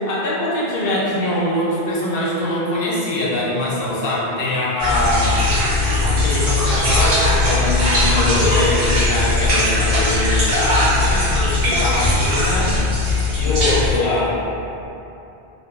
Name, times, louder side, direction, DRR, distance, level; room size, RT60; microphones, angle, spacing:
voice 1, 0.0-5.4 6.0-12.7 13.4-14.4, left 1 dB, 65° left, -6 dB, 0.7 m, -22 dB
sound 1, 4.8-14.0, left 2 dB, 85° right, 1.0 m, -18 dB
2.5 x 2.2 x 2.2 m, 2.8 s
omnidirectional pair, 1.1 m